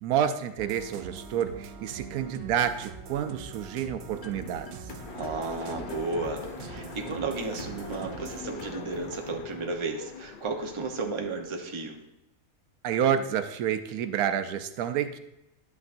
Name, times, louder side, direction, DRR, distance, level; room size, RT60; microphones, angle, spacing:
voice 1, 0.0-4.9 12.8-15.2, right 9 dB, 85° right, 9 dB, 1.1 m, -29 dB
sound 1, 0.6-8.4, right 6 dB, 60° right, 0.8 m, -43 dB
sound 2, 4.1-9.6, left 2 dB, 40° left, 1.0 m, -44 dB
Train, 5.0-12.0, left 6 dB, 70° left, 0.5 m, -45 dB
voice 2, 5.1-12.0, right 3 dB, 25° right, 2 dB, 0.7 m, -33 dB
11.0 x 8.4 x 2.6 m, 0.91 s
omnidirectional pair, 1.5 m